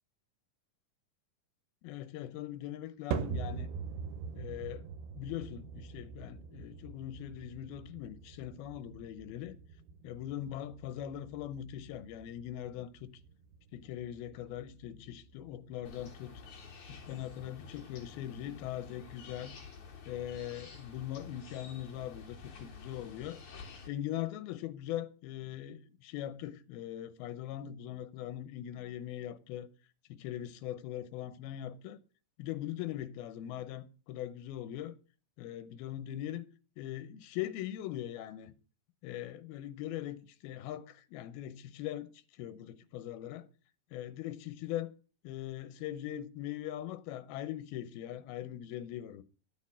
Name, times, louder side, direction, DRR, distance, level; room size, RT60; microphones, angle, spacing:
voice 1, 1.8-3.7 4.3-4.8 5.2-9.6 10.0-13.1 13.7-16.3 16.9-19.5 20.1-23.4 23.9-29.7 30.1-32.0 32.4-35.0 35.4-36.4 36.8-38.5 39.0-42.1 42.4-43.5 43.9-44.9 45.2-49.2, left 12 dB, 85° left, 2.8 m, -41 dB
sound 1, 3.1-19.5, right 6 dB, 90° right, 2.7 m, -45 dB
sound 2, 15.8-23.9, left 5 dB, 55° left, 3.5 m, -50 dB
11.5 x 6.4 x 7.2 m
omnidirectional pair, 4.3 m